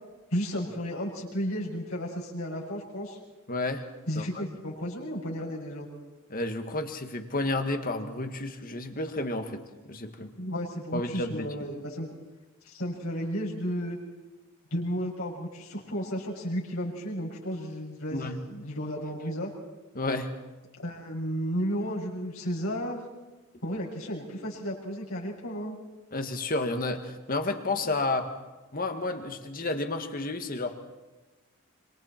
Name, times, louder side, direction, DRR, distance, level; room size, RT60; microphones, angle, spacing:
voice 1, 0.3-3.2 4.1-5.9 10.3-12.1 12.6-14.0 14.7-19.5 20.8-23.0 23.6-25.8, equal, 75° left, -4 dB, 6.9 m, -33 dB
voice 2, 3.5-3.9 4.1-4.4 6.3-10.3 10.9-11.5 18.1-18.4 19.9-20.3 26.1-28.3 28.7-30.8, left 2 dB, 40° left, 6 dB, 1.9 m, -31 dB
26.5 x 26.0 x 4.5 m, 1.1 s
head